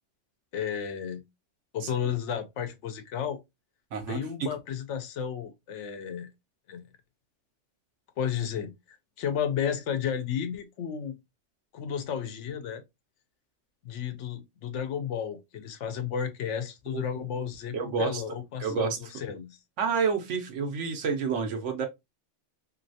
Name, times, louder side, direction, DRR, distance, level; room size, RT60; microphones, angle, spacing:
voice 1, 0.5-1.2 1.7-3.4 4.1-6.3 6.7-6.8 8.2-11.2 11.7-12.8 13.8-19.6, left 8 dB, 75° left, 0.9 m, -33 dB
voice 2, 3.9-4.5 16.9-17.0 17.7-18.2 18.6-19.0 19.8-21.9, right 5 dB, 90° right, 1.1 m, -29 dB
3.1 x 2.8 x 2.6 m
omnidirectional pair, 1.2 m